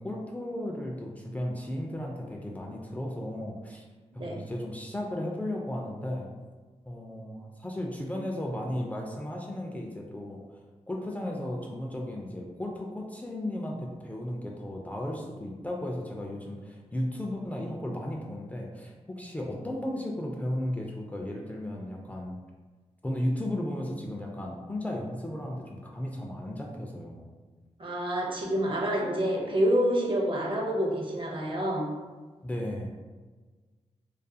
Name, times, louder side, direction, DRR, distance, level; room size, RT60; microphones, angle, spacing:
voice 1, 0.0-3.8 4.1-6.3 6.9-22.4 23.0-27.3 32.4-32.9, left 1 dB, 15° left, -2 dB, 0.3 m, -35 dB
voice 2, 27.8-31.9, equal, 45° right, -1 dB, 0.6 m, -27 dB
2.4 x 2.3 x 2.6 m, 1.4 s
cardioid pair, 80°, 12 cm